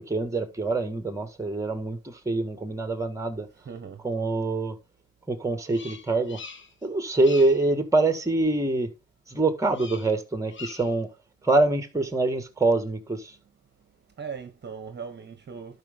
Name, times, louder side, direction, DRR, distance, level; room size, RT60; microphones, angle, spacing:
voice 1, 0.0-3.5 4.0-4.8 5.3-6.4 6.8-8.9 9.3-11.1 11.4-13.3, right 2 dB, 10° right, 1.7 m, -25 dB
voice 2, 3.6-4.0 14.2-15.8, right 6 dB, 35° right, 1.2 m, -39 dB
Bird vocalization bird call bird song, 5.7-6.9 7.1-7.7 9.7-10.2 10.5-11.0, left 4 dB, 40° left, 1.3 m, -43 dB
12.0 x 5.4 x 3.6 m
cardioid pair, 90°, 30 cm